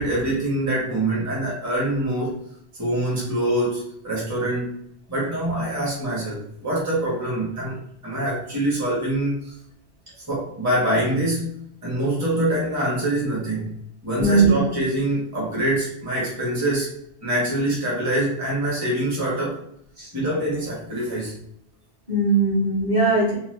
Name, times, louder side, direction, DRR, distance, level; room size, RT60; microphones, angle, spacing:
voice 1, 0.0-2.5 2.8-9.6 10.2-16.9 17.2-19.6 20.1-21.4, right 1 dB, 15° right, -6 dB, 0.9 m, -25 dB
voice 2, 14.2-14.6 20.0-20.1 22.1-23.4, right 3 dB, 40° right, -7 dB, 1.2 m, -19 dB
3.0 x 2.2 x 3.2 m, 0.70 s
omnidirectional pair, 1.1 m